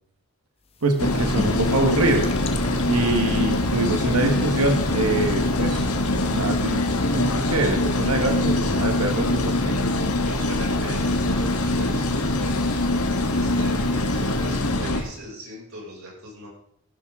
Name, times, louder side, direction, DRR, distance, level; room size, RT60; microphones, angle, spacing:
sound 1, 0.7-15.0, left 2 dB, 25° left, 1.1 m, -38 dB
voice 1, 0.8-2.3 2.9-5.9 6.3-6.9 7.1-9.8, right 2 dB, 85° right, 5 dB, 1.4 m, -24 dB
sound 2, 1.0-15.0, left 2 dB, 90° left, 1.6 m, -23 dB
voice 2, 10.1-12.8 13.3-16.5, right 1 dB, 65° right, -3 dB, 6.3 m, -39 dB
15.0 x 12.0 x 3.7 m, 0.69 s
head